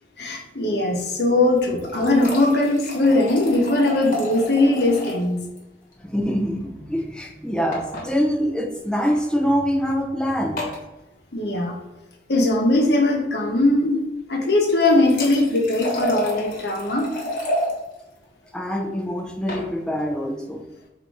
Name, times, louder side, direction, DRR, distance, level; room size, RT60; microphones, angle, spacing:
voice 1, 0.2-5.4 11.3-11.8 12.3-14.0 14.3-17.1, left 2 dB, 70° left, 1 dB, 0.9 m, -20 dB
sound 1, 1.5-5.3 5.6-5.7 5.9-6.0 7.7-8.1 9.0-9.2 10.6-10.8 14.6-17.7 19.2-19.7, equal, 45° left, 1.2 m, -30 dB
voice 2, 6.0-10.6 18.5-20.6, equal, 5° left, -1 dB, 0.6 m, -24 dB
4.1 x 2.7 x 4.7 m, 1.0 s
head